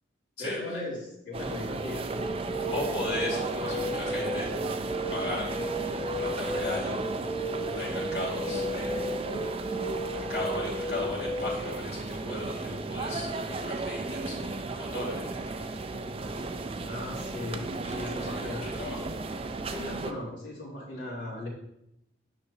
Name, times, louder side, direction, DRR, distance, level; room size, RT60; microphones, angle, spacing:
voice 1, 0.4-2.2 16.8-18.7 19.6-21.5, left 1 dB, 80° left, -9 dB, 2.8 m, -37 dB
sound 1, 1.3-20.1, right 3 dB, 30° right, 0.4 m, -35 dB
sound 2, 2.2-11.7, equal, 15° left, 0.6 m, -34 dB
voice 2, 2.7-4.5 5.1-6.9 7.7-9.1 9.4-9.5 10.1-15.8 17.8-19.1, left 1 dB, 60° left, -4 dB, 2.6 m, -37 dB
9.4 x 6.0 x 2.7 m, 0.81 s
head